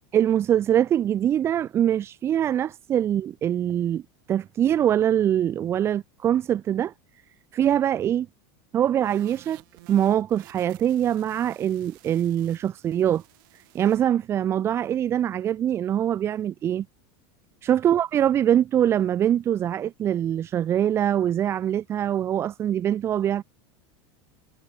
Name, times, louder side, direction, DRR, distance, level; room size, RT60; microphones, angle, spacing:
voice 1, 0.1-4.0 4.3-6.9 7.5-8.3 8.7-9.6 9.9-13.2 13.7-16.9 17.6-23.4, right 10 dB, 20° right, 0.7 m, -23 dB
sound 1, 9.0-14.0, right 26 dB, 50° right, 3.8 m, -53 dB
supercardioid pair, 175°, 14 cm